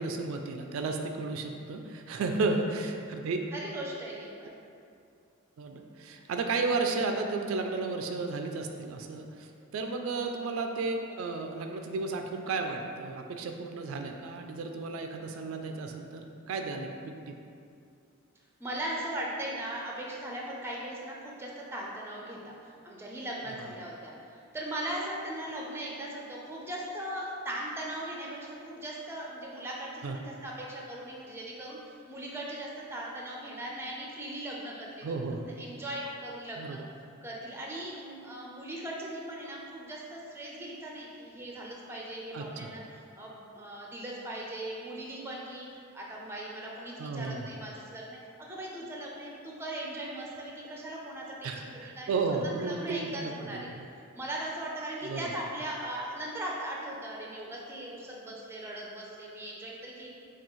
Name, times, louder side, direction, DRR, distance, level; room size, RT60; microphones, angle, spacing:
voice 1, 0.0-3.4 5.6-17.4 30.0-30.2 35.0-35.4 36.6-36.8 42.3-42.7 47.0-47.5 51.4-53.9 55.0-55.3, right 3 dB, 75° right, 4 dB, 0.3 m, -33 dB
voice 2, 2.2-2.6 3.5-4.6 18.6-22.5 22.8-35.1 35.3-36.8 37.2-52.1 52.6-53.7 54.1-60.1, right 1 dB, 10° right, -3 dB, 0.5 m, -39 dB
5.9 x 2.3 x 3.0 m, 2.5 s
head